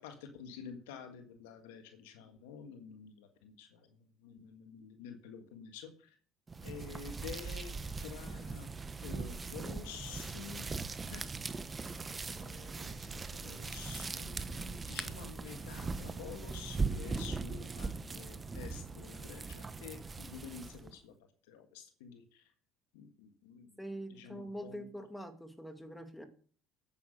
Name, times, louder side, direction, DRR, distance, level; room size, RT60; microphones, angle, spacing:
voice 1, 0.0-6.1 6.6-8.7 9.0-10.7 11.1-11.3 12.4-21.1 21.5-22.5 22.9-23.7 24.1-24.9, left 7 dB, 80° left, 6 dB, 1.6 m, -49 dB
sound 1, 6.5-20.9, right 4 dB, 25° right, 1.0 m, -40 dB
voice 2, 23.8-26.3, equal, 5° left, 6 dB, 2.4 m, -44 dB
9.4 x 8.5 x 6.5 m, 0.44 s
hypercardioid pair, 70°, 0 cm